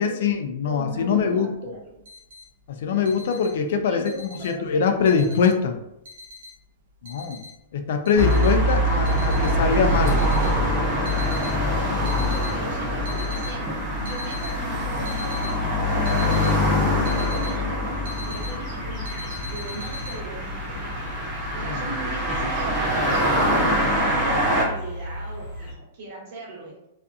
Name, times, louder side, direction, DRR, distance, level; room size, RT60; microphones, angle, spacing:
voice 1, 0.0-1.5 2.7-4.1 4.4-5.7 7.0-7.4 7.7-10.2 21.6-21.8, left 6 dB, 60° left, 6 dB, 0.3 m, -23 dB
voice 2, 0.6-1.9 3.8-5.4 12.5-21.3 21.5-23.1 23.5-26.9, right 2 dB, 45° right, -3 dB, 0.9 m, -39 dB
sound 1, 1.5-1.6 1.8-2.5 2.8-4.7 5.1-5.8 6.1-7.7 8.1-8.6 9.1-9.6 10.0-11.6 12.0-12.6 12.9-13.6 13.9-14.5 15.1-17.5 17.8-18.6 19.1-20.2, left 2 dB, 65° right, 0.5 m, -40 dB
sound 2, 8.2-24.6, equal, 10° right, 0.6 m, -24 dB
sound 3, 18.1-25.7, equal, 25° left, 0.9 m, -37 dB
2.6 x 2.4 x 2.3 m, 0.82 s
supercardioid pair, 170°, 0 cm